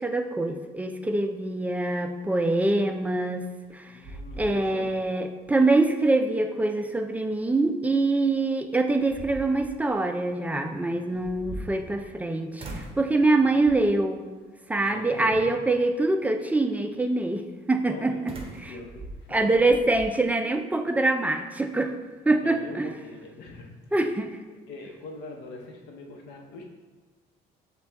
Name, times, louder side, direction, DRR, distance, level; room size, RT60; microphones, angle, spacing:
voice 1, 0.0-3.9 4.4-14.2 14.7-18.1 18.6-18.7 19.3-22.0 22.3-22.9 23.9-24.3, right 2 dB, 10° right, 6 dB, 0.3 m, -24 dB
sound 1, 3.4-3.7 4.0-5.0 5.4-5.5 8.2-8.3 8.9-9.8 11.1-12.2 12.6-13.1 13.6-14.0 14.8-15.3 18.3-20.1, right 2 dB, 35° right, 0.7 m, -41 dB
voice 2, 3.9-5.0 10.9-11.7 13.3-13.6 14.9-15.4 17.9-19.4 22.2-23.7 24.7-26.6, left 2 dB, 85° left, 2 dB, 0.8 m, -43 dB
6.6 x 2.3 x 3.4 m, 1.3 s
cardioid pair, 110°, 17 cm